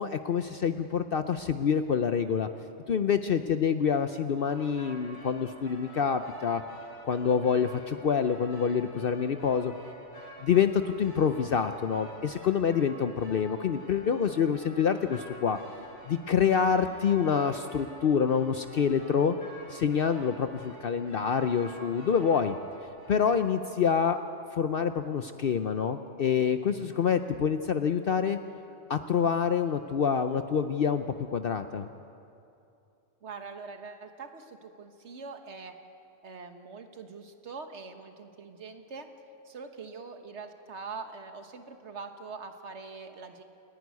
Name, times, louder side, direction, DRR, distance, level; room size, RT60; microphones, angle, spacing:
voice 1, 0.0-2.5 2.9-6.6 7.0-9.7 10.4-15.6 16.1-19.4 19.7-22.6 23.1-24.2 24.5-28.4 28.9-31.0 31.3-31.9, left 7 dB, 55° left, 9 dB, 0.8 m, -27 dB
sound 1, 4.4-23.3, equal, 40° left, 3.9 m, -48 dB
voice 2, 33.2-35.7 36.2-39.1 39.4-43.4, right 4 dB, 65° right, 6 dB, 1.7 m, -43 dB
29.0 x 11.0 x 9.5 m, 2.7 s
omnidirectional pair, 1.3 m